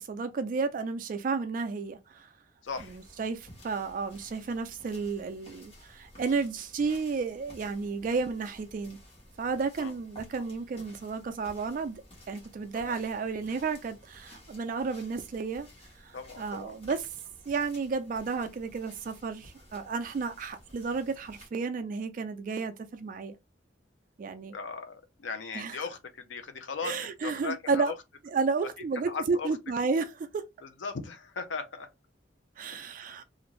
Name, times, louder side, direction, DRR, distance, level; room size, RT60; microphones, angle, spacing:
voice 1, 0.0-2.3 2.9-9.0 9.4-12.0 12.3-15.7 16.0-17.1 17.5-23.4 24.2-24.5 25.5-25.8 26.8-27.9 28.3-30.4 32.6-33.2, right 4 dB, 45° right, 0.3 m, -32 dB
voice 2, 2.6-3.0 9.8-9.9 12.8-13.0 16.1-16.8 24.5-28.0 29.1-29.6 30.6-31.9 32.7-32.9, left 4 dB, 85° left, 0.5 m, -38 dB
sound 1, 2.6-21.5, left 1 dB, 30° left, 1.2 m, -54 dB
2.5 x 2.5 x 3.0 m
head